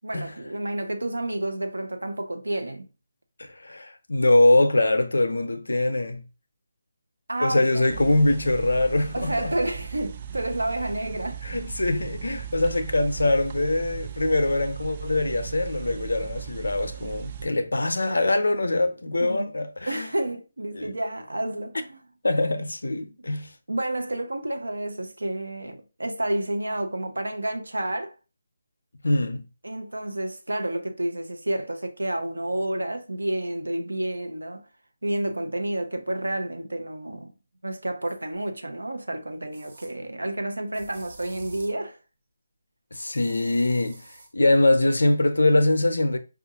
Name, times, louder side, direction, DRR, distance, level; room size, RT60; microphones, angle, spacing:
voice 1, 0.0-2.9 7.3-8.2 9.1-11.7 19.2-19.5 19.9-22.0 23.2-23.3 23.7-28.1 29.6-34.6 35.0-37.3 37.6-42.0, right 1 dB, 80° right, 0.7 m, -30 dB
voice 2, 3.4-6.2 7.4-9.5 11.4-20.1 20.7-20.9 22.2-23.5 29.0-29.4 42.9-44.0 44.3-46.2, left 2 dB, 70° left, 0.5 m, -23 dB
sound 1, 7.9-17.5, right 8 dB, 35° right, 0.3 m, -37 dB
sound 2, 38.3-38.4 39.5-39.9 40.7-41.8 42.9-44.3, right 2 dB, 55° right, 1.1 m, -48 dB
4.9 x 2.4 x 2.8 m
figure-of-eight pair, 150°, 0 cm